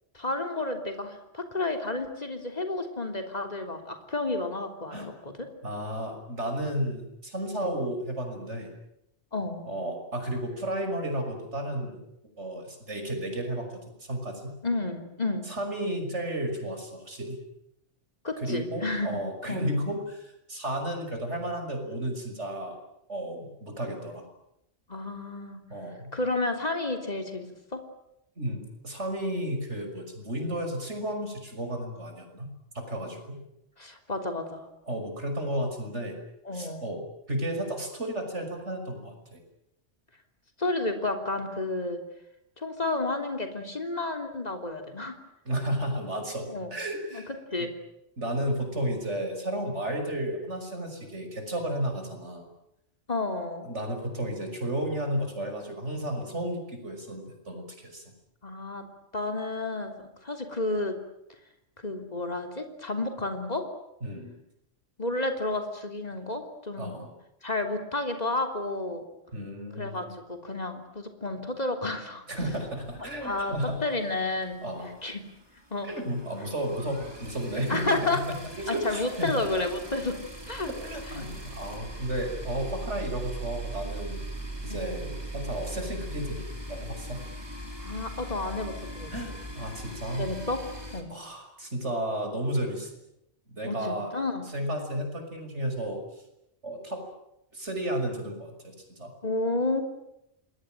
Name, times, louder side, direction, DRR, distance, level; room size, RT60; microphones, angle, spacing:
voice 1, 0.1-5.3 7.6-7.8 9.3-9.6 14.6-15.5 18.2-19.1 19.5-19.7 24.9-25.6 26.1-27.5 27.7-27.8 33.8-34.7 36.5-36.9 40.6-42.0 42.6-45.2 46.5-46.7 47.1-47.7 53.1-53.7 58.4-61.0 61.8-63.7 65.0-67.1 67.4-69.1 69.8-72.2 73.2-74.6 75.0-75.3 75.7-75.9 77.7-78.2 78.7-80.2 80.5-80.7 81.1-81.3 83.1-83.2 84.7-84.9 87.8-89.3 90.1-90.7 90.9-91.1 93.7-94.5 99.2-99.8, left 2 dB, 35° left, 5 dB, 3.5 m, -31 dB
voice 2, 5.6-8.7 9.6-12.0 12.4-14.5 15.5-17.4 18.4-22.8 23.1-24.2 25.7-26.1 28.4-33.4 34.9-36.1 36.5-39.4 45.4-47.3 48.2-52.4 53.6-58.0 64.0-64.3 66.8-67.1 69.3-70.2 72.3-73.8 74.6-74.9 75.8-79.4 80.7-84.2 84.6-86.4 86.7-87.2 89.1-90.3 91.1-92.9 93.5-94.1 94.5-96.0 96.6-97.0 97.5-99.1, right 1 dB, 70° right, 5 dB, 6.4 m, -33 dB
sound 1, 72.3-74.1 74.4-74.6 74.9-75.0 75.2-91.0, right 1 dB, 20° right, 3.9 m, -40 dB
27.5 x 21.5 x 9.2 m, 0.82 s
omnidirectional pair, 1.2 m